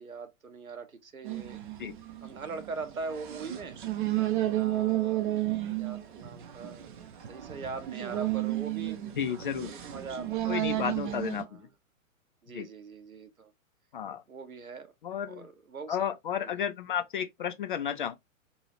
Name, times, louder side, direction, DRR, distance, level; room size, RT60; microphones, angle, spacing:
voice 1, 0.0-1.9 2.2-3.8 4.5-5.3 5.8-6.9 7.3-9.1 9.7-11.2 11.5-11.6 12.4-13.5 14.3-14.9 15.3-16.1 16.4-16.5, right 4 dB, 80° right, 0.9 m, -41 dB
sound 1, 1.2-11.4, right 15 dB, 35° right, 0.6 m, -32 dB
voice 2, 9.2-9.7 10.5-11.5 12.5-12.7 13.9-14.2 15.0-15.5 15.9-18.1, left 8 dB, 40° left, 0.4 m, -32 dB
2.7 x 2.7 x 3.0 m
figure-of-eight pair, 110°, 41 cm